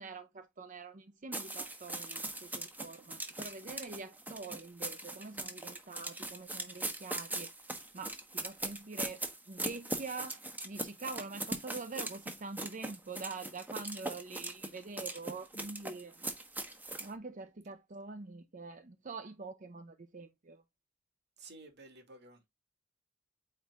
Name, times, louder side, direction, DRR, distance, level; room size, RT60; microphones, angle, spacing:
voice 1, 0.0-7.5 7.9-9.2 9.5-10.4 10.6-16.3 17.0-20.6, right 3 dB, 40° right, 0.7 m, -45 dB
sound 1, 1.3-17.1, right 2 dB, 10° right, 1.2 m, -40 dB
voice 2, 21.4-22.5, right 3 dB, 60° right, 2.4 m, -53 dB
8.8 x 4.5 x 2.4 m
head